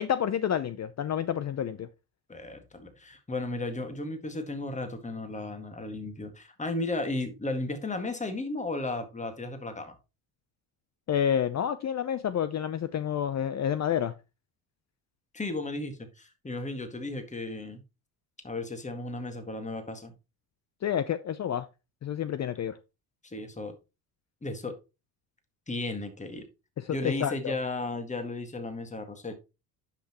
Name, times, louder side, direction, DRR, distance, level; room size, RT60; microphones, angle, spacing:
voice 1, 0.0-1.9 11.1-14.1 20.8-21.7 22.0-22.8 26.8-27.5, left 9 dB, 35° left, 0.6 m, -29 dB
voice 2, 2.3-10.0 15.3-17.8 18.4-20.1 23.2-23.8 24.4-24.8 25.7-26.4 26.9-29.3, left 2 dB, 15° left, 1.9 m, -34 dB
9.8 x 6.0 x 3.0 m
supercardioid pair, 75°, 47 cm